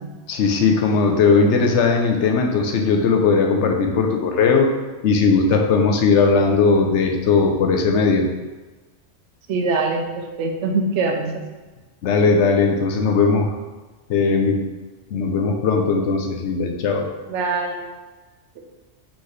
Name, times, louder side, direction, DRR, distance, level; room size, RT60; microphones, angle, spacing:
voice 1, 0.3-4.7 5.0-8.3 12.0-13.6 14.1-14.6 15.1-17.1, left 4 dB, 80° left, 2 dB, 0.9 m, -18 dB
voice 2, 9.5-11.3 17.3-17.9, right 3 dB, 80° right, 3 dB, 0.9 m, -23 dB
3.9 x 3.6 x 3.2 m, 1.2 s
omnidirectional pair, 1.2 m